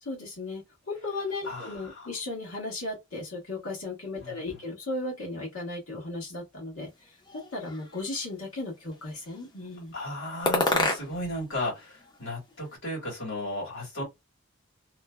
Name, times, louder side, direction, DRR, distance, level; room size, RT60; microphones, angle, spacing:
voice 1, 0.0-6.9 7.5-9.9, left 2 dB, 80° left, 1.5 m, -36 dB
voice 2, 1.4-2.1 4.2-4.6 9.9-14.0, left 1 dB, 60° left, 1.8 m, -35 dB
sound 1, 7.2-8.3 8.9-9.6 10.5-11.4 11.7-12.7, left 2 dB, 20° left, 0.6 m, -30 dB
3.0 x 2.1 x 2.3 m
head